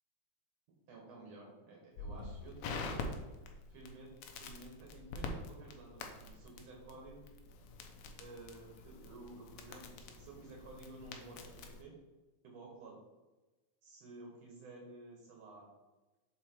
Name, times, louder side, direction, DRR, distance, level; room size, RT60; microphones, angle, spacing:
voice 1, 0.9-2.9 3.7-7.2 8.2-11.9 12.4-13.0 13.8-15.7, right 2 dB, 60° right, -1 dB, 2.2 m, -53 dB
Crackle, 2.0-11.8, left 3 dB, 75° left, 1.8 m, -46 dB
6.2 x 4.2 x 4.4 m, 1.2 s
omnidirectional pair, 3.6 m